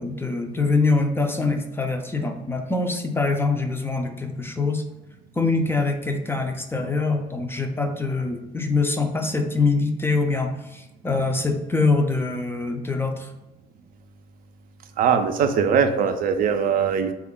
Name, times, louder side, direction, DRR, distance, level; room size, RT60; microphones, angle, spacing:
voice 1, 0.0-4.8 5.4-13.3, left 3 dB, 15° left, 4 dB, 0.4 m, -24 dB
voice 2, 15.0-17.1, right 7 dB, 55° right, 8 dB, 0.4 m, -21 dB
3.5 x 2.3 x 3.7 m, 1.0 s
cardioid pair, 110°, 17 cm